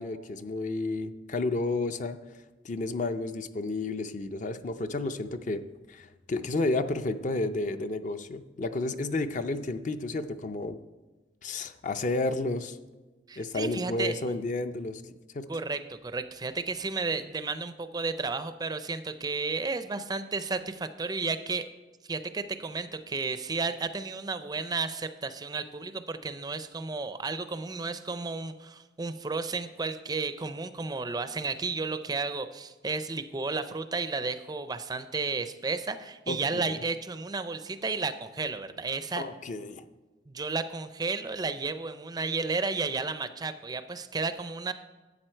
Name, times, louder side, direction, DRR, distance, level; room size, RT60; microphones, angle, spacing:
voice 1, 0.0-2.2 2.6-5.6 5.9-10.8 11.4-12.8 13.4-15.0 15.3-15.5 36.3-36.7 39.2-39.8, left 2 dB, 40° left, 9 dB, 0.5 m, -31 dB
voice 2, 13.3-14.1 15.5-21.7 22.0-39.2 40.3-44.7, right 4 dB, 20° right, 11 dB, 0.4 m, -33 dB
12.0 x 8.4 x 4.4 m, 1.2 s
head